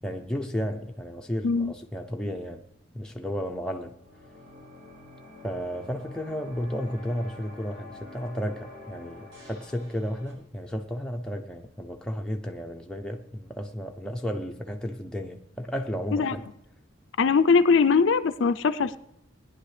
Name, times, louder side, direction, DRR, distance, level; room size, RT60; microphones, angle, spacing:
voice 1, 0.0-2.6 2.9-3.9 5.4-16.5, equal, 5° left, 0.6 m, -33 dB
sound 1, 3.9-10.3, left 2 dB, 85° right, 5.2 m, -47 dB
voice 2, 17.2-19.0, left 5 dB, 65° left, 0.4 m, -21 dB
19.0 x 10.0 x 3.3 m
head